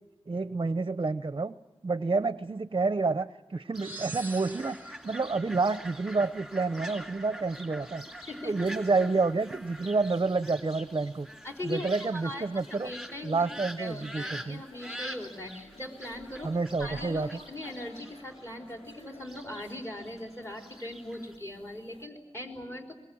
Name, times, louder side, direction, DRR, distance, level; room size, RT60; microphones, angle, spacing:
voice 1, 0.3-1.5 1.8-8.0 8.4-11.3 11.6-12.9 13.2-14.6 16.4-17.3, right 3 dB, 40° right, 13 dB, 0.7 m, -29 dB
Fowl, 3.7-21.4, equal, ahead, 3.0 m, -45 dB
sound 1, 3.8-5.2, right 3 dB, 15° right, 1.0 m, -43 dB
sound 2, 5.3-22.1, left 1 dB, 60° left, 3.6 m, -55 dB
voice 2, 11.4-13.4 13.8-16.5 16.8-23.0, left 1 dB, 25° left, 2 dB, 4.2 m, -40 dB
23.0 x 21.5 x 8.6 m, 1.0 s
wide cardioid pair, 70°, 11 cm